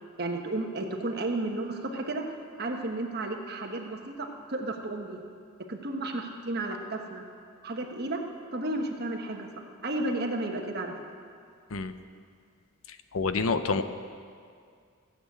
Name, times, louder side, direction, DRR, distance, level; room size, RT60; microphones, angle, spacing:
voice 1, 0.2-2.2 2.6-5.2 5.7-7.2 7.6-8.2 8.5-10.9, right 2 dB, 50° right, 2 dB, 1.3 m, -33 dB
voice 2, 13.1-13.8, left 4 dB, 70° left, 10 dB, 0.7 m, -27 dB
16.0 x 7.7 x 8.5 m, 2.2 s
head